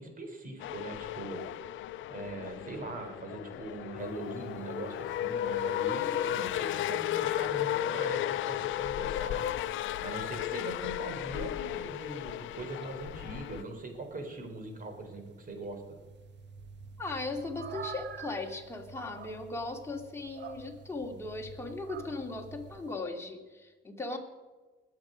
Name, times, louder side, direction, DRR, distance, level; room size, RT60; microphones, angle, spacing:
voice 1, 0.0-1.4 2.1-9.5 10.0-15.8, right 2 dB, 45° right, 4 dB, 4.1 m, -41 dB
sound 1, 0.6-13.6, left 12 dB, 80° left, 0.5 m, -34 dB
sound 2, 4.0-22.9, right 6 dB, 60° right, 1.4 m, -51 dB
voice 2, 17.0-24.2, left 3 dB, 15° left, 1 dB, 2.6 m, -38 dB
21.0 x 7.8 x 5.3 m, 1.3 s
cardioid pair, 90°, 20 cm